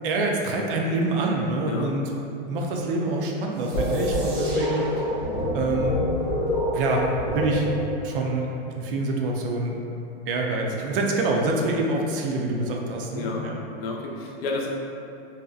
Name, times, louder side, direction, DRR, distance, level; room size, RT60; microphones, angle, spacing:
voice 1, 0.0-2.1 2.4-4.8 5.5-6.0 6.7-7.1 7.3-7.7 8.0-8.5 8.8-9.7 10.3-13.6, right 2 dB, 65° right, 0 dB, 0.4 m, -26 dB
voice 2, 1.6-1.9 13.1-13.4 13.8-14.7, left 3 dB, 80° left, -1 dB, 0.5 m, -31 dB
sound 1, 3.5-8.1, equal, 90° right, 0.8 m, -38 dB
sound 2, 3.7-8.2, equal, 20° left, 0.5 m, -26 dB
2.7 x 2.0 x 2.3 m, 2.7 s
supercardioid pair, 165°, 30 cm